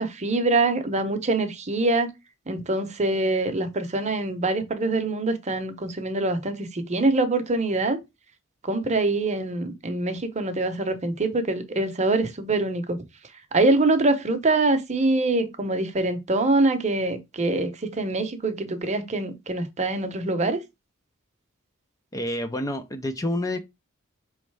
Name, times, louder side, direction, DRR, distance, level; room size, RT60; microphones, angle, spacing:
voice 1, 0.0-2.1 2.5-8.0 8.6-13.0 13.5-20.6, right 2 dB, 35° right, 0.8 m, -24 dB
voice 2, 22.1-23.6, left 1 dB, 15° left, 0.4 m, -28 dB
5.1 x 3.2 x 3.3 m
head